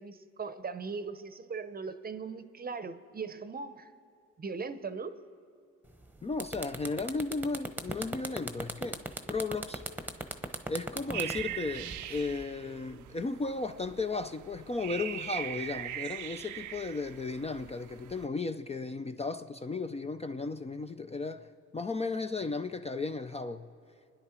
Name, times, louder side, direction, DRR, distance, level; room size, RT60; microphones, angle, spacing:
voice 1, 0.0-3.9 4.4-5.1, right 5 dB, 30° right, 11 dB, 0.7 m, -39 dB
sound 1, 5.9-6.0 6.3-12.4, right 1 dB, 5° right, 1.0 m, -37 dB
voice 2, 6.2-9.0 9.3-9.9 10.7-23.7, left 3 dB, 20° left, 8 dB, 0.4 m, -35 dB
sound 2, 11.1-18.3, right 12 dB, 75° right, 0.6 m, -41 dB
29.5 x 10.0 x 4.4 m, 2.3 s
cardioid pair, 90°, 30 cm